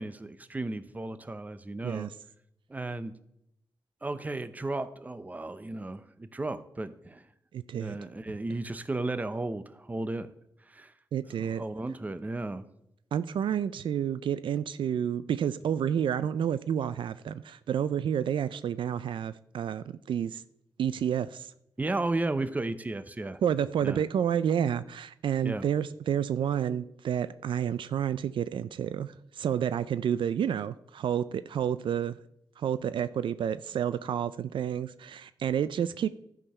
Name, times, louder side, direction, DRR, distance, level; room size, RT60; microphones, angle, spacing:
voice 1, 0.0-2.1 2.7-3.1 4.0-7.2 7.7-10.3 10.7-10.9 11.4-12.6 21.8-23.4 23.8-24.0 25.4-25.7, right 2 dB, 20° right, 0.6 m, -34 dB
voice 2, 7.5-8.0 11.1-11.6 13.1-20.4 20.8-21.5 23.4-32.2 32.6-36.1, right 9 dB, 80° right, 0.3 m, -30 dB
12.0 x 4.8 x 5.4 m
wide cardioid pair, 100°, 8 cm